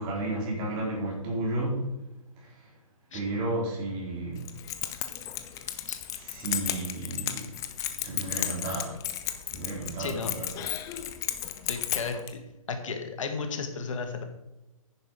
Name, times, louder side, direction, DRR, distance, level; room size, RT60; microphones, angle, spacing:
voice 1, 0.0-1.9 2.4-2.5 3.1-4.5 5.7-5.8 6.1-7.5 8.0-9.0 9.5-10.5, right 2 dB, 25° right, -3 dB, 4.4 m, -32 dB
Keys jangling, 4.4-12.3, left 12 dB, 20° left, 0.8 m, -34 dB
voice 2, 10.0-10.4 11.6-12.2 12.7-14.2, left 5 dB, 60° left, 5 dB, 2.0 m, -33 dB
10.5 x 10.0 x 4.9 m, 0.99 s
hypercardioid pair, 145°, 18 cm